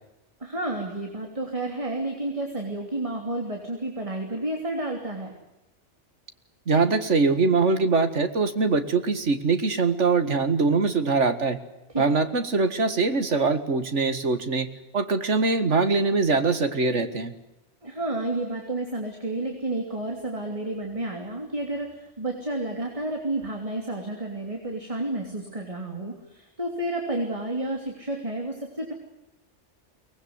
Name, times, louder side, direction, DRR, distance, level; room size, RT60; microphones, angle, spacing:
voice 1, 0.4-5.3 11.9-12.0 17.8-28.9, right 2 dB, 30° right, 2 dB, 3.2 m, -31 dB
voice 2, 6.7-11.6 12.0-17.3, right 4 dB, 80° right, 9 dB, 2.2 m, -23 dB
23.5 x 20.0 x 9.6 m, 0.92 s
omnidirectional pair, 1.2 m